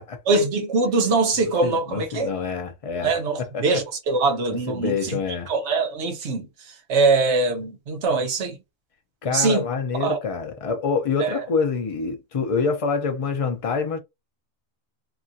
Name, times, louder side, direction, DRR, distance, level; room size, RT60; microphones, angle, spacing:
voice 1, 0.3-2.3 3.0-5.2 5.5-6.5 6.9-8.6 9.3-9.6 10.0-10.2 11.2-11.4, right 3 dB, 60° right, 1.1 m, -22 dB
voice 2, 1.6-3.8 4.5-5.5 9.2-14.0, left 5 dB, 60° left, 0.3 m, -26 dB
2.9 x 2.4 x 2.6 m
omnidirectional pair, 1.4 m